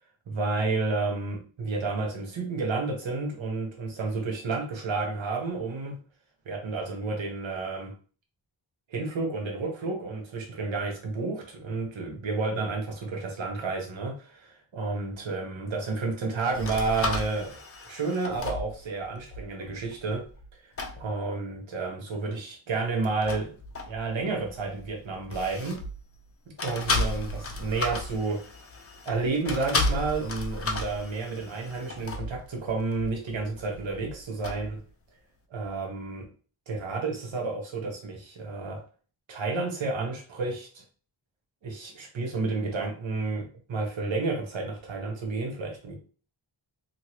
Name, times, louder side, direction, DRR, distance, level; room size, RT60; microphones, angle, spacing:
voice 1, 0.3-6.0 6.5-7.9 8.9-17.6 17.9-20.2 21.0-23.5 23.9-25.8 26.6-28.4 29.1-34.8 35.5-36.3 36.7-38.8 39.3-40.8 41.6-46.0, right 3 dB, 75° right, 1 dB, 0.9 m, -31 dB
sound 1, 16.5-20.5 20.8-21.0 23.0-26.2 26.6-34.8, left 2 dB, 30° left, 0.5 m, -34 dB
2.9 x 2.6 x 2.9 m, 0.40 s
wide cardioid pair, 110°, 47 cm